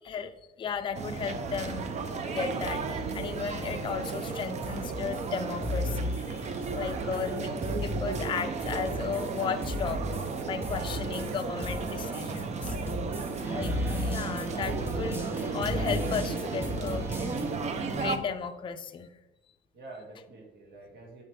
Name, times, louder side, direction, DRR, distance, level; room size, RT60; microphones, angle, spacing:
voice 1, 0.0-1.9 2.2-10.1 10.4-12.7 13.5-15.3 15.5-17.1 17.9-19.1, left 6 dB, 30° left, 8 dB, 0.4 m, -35 dB
sound 1, 0.9-18.2, right 4 dB, 40° right, 0.7 m, -34 dB
sound 2, 2.6-17.5, equal, 15° right, 1.0 m, -36 dB
voice 2, 19.7-21.2, right 2 dB, 75° right, -1 dB, 2.2 m, -48 dB
7.5 x 5.6 x 3.3 m, 0.96 s
cardioid pair, 110°, 17 cm